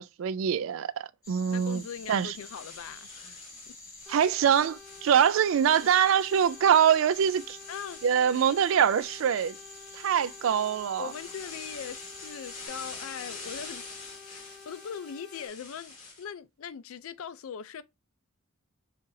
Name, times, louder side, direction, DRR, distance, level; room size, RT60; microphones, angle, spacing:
voice 1, 0.0-1.8 2.1-2.4 4.1-7.6 8.0-9.6 9.9-11.1, right 8 dB, 65° right, 0.3 m, -24 dB
sound 1, 1.2-12.7, left 2 dB, 20° left, 2.1 m, -48 dB
voice 2, 1.5-3.4 3.7-3.8 7.7-8.0 8.5-8.8 11.0-13.8 14.3-17.8, left 7 dB, 80° left, 0.4 m, -41 dB
sound 2, 1.5-16.2, left 3 dB, 40° left, 1.4 m, -47 dB
sound 3, 4.1-15.5, left 4 dB, ahead, 0.7 m, -51 dB
5.5 x 2.5 x 2.6 m
head